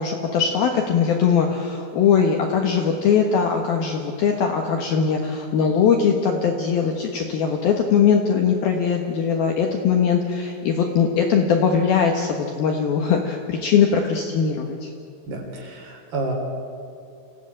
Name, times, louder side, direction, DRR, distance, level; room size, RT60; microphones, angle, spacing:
voice 1, 0.0-14.9, left 6 dB, 65° left, 2 dB, 2.6 m, -20 dB
voice 2, 15.3-16.3, right 3 dB, 50° right, 1 dB, 5.1 m, -30 dB
26.5 x 16.5 x 8.8 m, 2.5 s
omnidirectional pair, 5.8 m